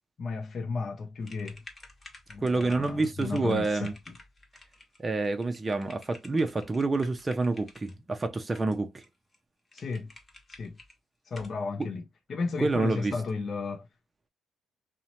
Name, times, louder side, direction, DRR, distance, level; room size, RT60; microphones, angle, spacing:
voice 1, 0.2-1.6 2.3-4.1 9.7-10.1 10.5-10.8 11.3-13.9, left 4 dB, 50° left, 0.5 m, -34 dB
sound 1, 1.2-7.9 8.5-9.1 9.3-9.4 9.7-10.9 11.3-11.6, left 2 dB, 30° left, 0.9 m, -51 dB
voice 2, 2.4-3.9 5.0-9.0 12.6-13.1, right 3 dB, 25° right, 0.4 m, -28 dB
2.7 x 2.1 x 2.8 m
cardioid pair, 90°, 0 cm